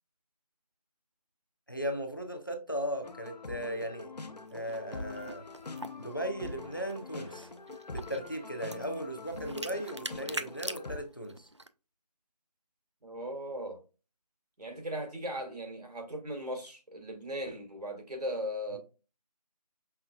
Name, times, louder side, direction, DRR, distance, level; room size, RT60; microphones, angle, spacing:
voice 1, 1.7-5.4 6.0-7.5 7.9-11.5, equal, 30° left, 0.5 m, -37 dB
sound 1, 3.0-11.0, left 3 dB, 80° left, 0.8 m, -44 dB
sound 2, 4.5-11.7, right 2 dB, 45° right, 0.4 m, -44 dB
voice 2, 13.0-13.8 14.6-18.8, equal, 75° right, 2.0 m, -38 dB
5.7 x 3.4 x 2.3 m
figure-of-eight pair, 180°, 21 cm